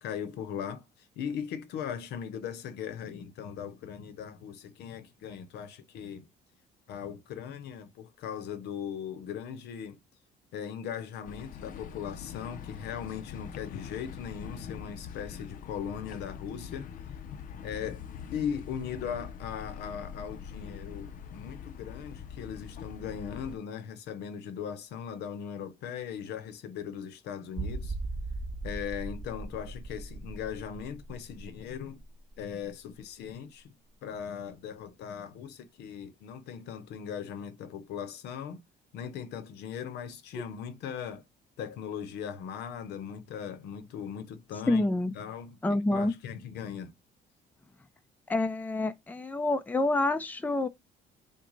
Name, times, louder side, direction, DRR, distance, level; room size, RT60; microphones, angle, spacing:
voice 1, 0.0-6.3 6.9-10.0 10.5-17.2 17.6-28.0 28.6-32.0 32.4-33.8 34.0-38.6 38.9-41.2 41.6-44.8 45.1-46.9, left 8 dB, 80° left, 0.8 m, -39 dB
sound 1, 11.2-23.6, left 7 dB, 55° left, 0.6 m, -43 dB
sound 2, 27.6-33.0 33.3-33.4 33.9-34.0, right 2 dB, 25° right, 1.0 m, -39 dB
voice 2, 44.7-45.1 45.6-46.1 48.3-50.7, left 2 dB, 10° left, 0.6 m, -27 dB
6.0 x 2.2 x 4.0 m
cardioid pair, 110°, 17 cm